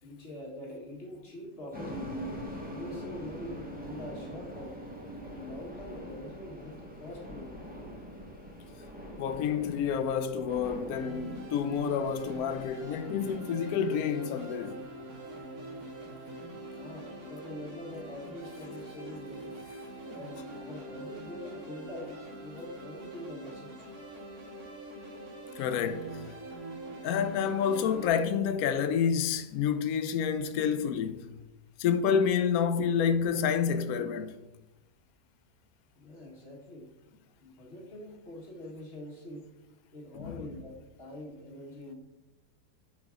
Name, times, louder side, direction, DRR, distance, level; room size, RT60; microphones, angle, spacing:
voice 1, 0.0-2.3 2.7-4.8 5.2-7.6 16.7-19.5 20.1-22.1 22.4-23.7 36.0-36.9 37.4-39.6 39.9-41.9, left 1 dB, 40° left, 1.5 m, -44 dB
sound 1, 1.7-13.3, equal, 5° right, 1.1 m, -43 dB
voice 2, 9.2-14.8 25.6-26.3 27.0-31.3 31.8-34.3 40.1-40.4, left 7 dB, 70° left, 1.0 m, -29 dB
sound 2, 10.9-28.1, right 2 dB, 60° right, 1.9 m, -44 dB
8.6 x 4.7 x 3.6 m
omnidirectional pair, 1.8 m